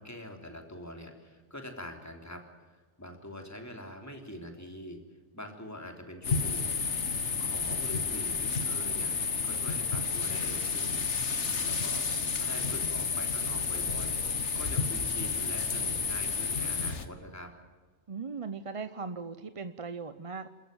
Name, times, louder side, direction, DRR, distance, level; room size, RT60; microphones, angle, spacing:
voice 1, 0.0-5.0 5.3-6.8 7.4-11.0 11.3-17.5, left 1 dB, 15° left, 3 dB, 3.4 m, -44 dB
sound 1, 6.2-17.0, left 5 dB, 80° left, 1.8 m, -31 dB
voice 2, 18.1-20.5, right 5 dB, 35° right, 11 dB, 0.7 m, -38 dB
28.5 x 14.0 x 9.1 m, 1.4 s
omnidirectional pair, 1.2 m